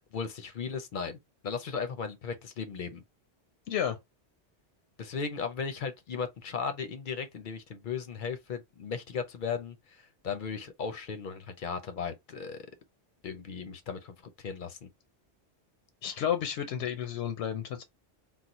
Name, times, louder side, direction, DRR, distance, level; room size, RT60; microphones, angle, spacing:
voice 1, 0.1-1.2 1.4-3.0 5.0-12.7 13.2-14.9, left 6 dB, 60° left, 0.6 m, -36 dB
voice 2, 16.0-17.8, left 9 dB, 85° left, 0.9 m, -31 dB
3.9 x 2.0 x 2.9 m
omnidirectional pair, 1.1 m